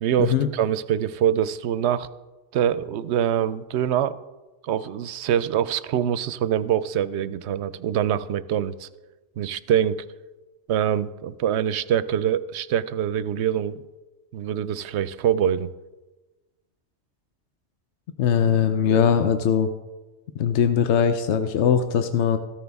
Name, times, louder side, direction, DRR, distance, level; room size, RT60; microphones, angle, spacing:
voice 1, 0.0-2.1 2.5-4.1 4.6-8.9 9.4-10.0 10.7-13.8 14.3-15.7, right 10 dB, 80° right, 15 dB, 0.9 m, -24 dB
voice 2, 18.2-19.7 20.4-22.4, left 8 dB, 80° left, 8 dB, 1.0 m, -20 dB
14.5 x 13.5 x 3.5 m, 1.2 s
omnidirectional pair, 1.1 m